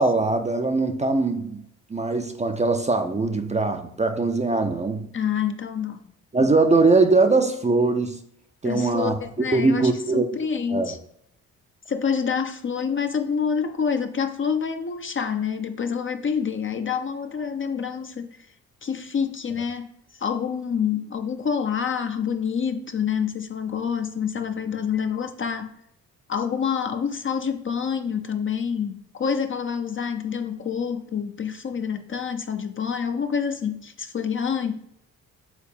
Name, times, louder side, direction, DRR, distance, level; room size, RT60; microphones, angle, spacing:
voice 1, 0.0-1.6 1.9-5.1 6.3-8.2 8.6-9.2 9.5-10.3 10.7-10.9, right 3 dB, 15° right, 0.6 m, -21 dB
voice 2, 5.1-6.1 8.6-11.0 11.9-18.5 18.8-19.9 20.1-25.7 26.3-34.7, left 7 dB, 30° left, 0.6 m, -27 dB
7.2 x 4.0 x 3.5 m
hypercardioid pair, 45°, 43 cm